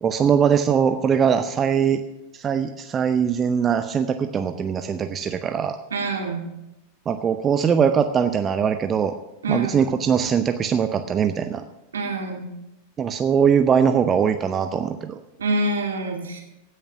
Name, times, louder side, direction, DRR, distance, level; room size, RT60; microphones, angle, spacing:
voice 1, 0.0-2.0 2.3-5.8 7.1-9.1 9.5-11.6 13.0-15.2, right 7 dB, 25° right, 9 dB, 0.6 m, -21 dB
voice 2, 5.9-6.4 9.4-9.8 11.9-12.5 15.4-16.4, right 2 dB, 70° right, 1 dB, 2.5 m, -26 dB
16.5 x 6.5 x 5.8 m, 0.94 s
figure-of-eight pair, 90°, 0 cm